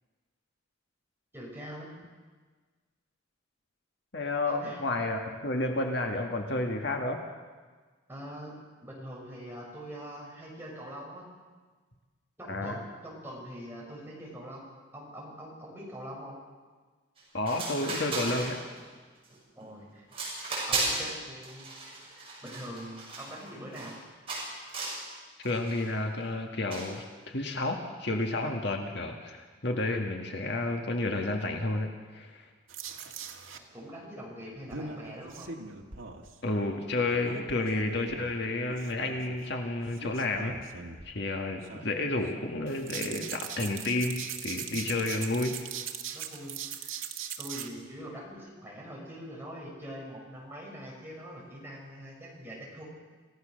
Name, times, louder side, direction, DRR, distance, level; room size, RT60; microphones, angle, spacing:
voice 1, 1.3-1.9 4.5-4.8 8.1-11.3 12.4-16.4 19.5-20.1 20.7-24.0 33.5-35.5 46.1-47.0 47.4-52.8, equal, 10° right, -4 dB, 6.3 m, -43 dB
voice 2, 4.1-7.2 12.5-12.8 17.3-18.6 25.4-32.4 36.4-40.6 41.1-45.6, left 2 dB, 60° left, 3 dB, 1.9 m, -31 dB
sound 1, 17.2-17.3 17.5-18.8 19.2-19.6 20.1-21.1 21.4-24.0 24.3-25.0 25.4-25.8 26.7-27.0, right 2 dB, 30° right, 7.5 m, -35 dB
sound 2, 32.7-33.6 34.6-36.4 37.1-38.3 38.7-39.4 39.9-41.1 41.6-42.3 42.6-47.7, right 7 dB, 85° right, 1.8 m, -40 dB
27.5 x 16.0 x 6.6 m, 1.4 s
head